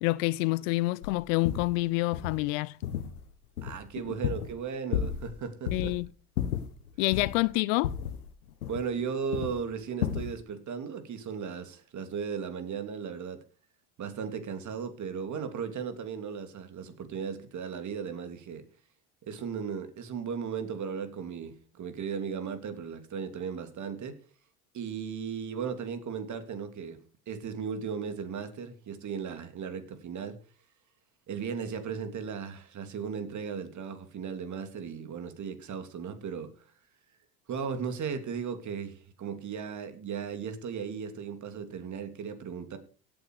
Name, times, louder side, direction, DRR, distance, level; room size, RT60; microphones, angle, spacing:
voice 1, 0.0-2.8 5.7-6.1 7.0-7.9, left 22 dB, 60° left, 0.6 m, -27 dB
sound 1, 1.0-1.1 1.4-1.7 2.1-2.4 2.8-3.2 3.6-4.6 4.9-5.4 5.7-6.0 6.4-7.5 7.8-9.1 9.3-9.6 10.0-10.3, left 9 dB, 80° left, 1.5 m, -33 dB
voice 2, 3.6-6.0 8.6-13.4 14.0-18.6 19.2-24.1 24.7-27.0 27.3-30.4 31.3-36.7 37.5-42.8, right 6 dB, 40° right, 3.0 m, -36 dB
17.0 x 8.9 x 4.9 m
hypercardioid pair, 75°, 44 cm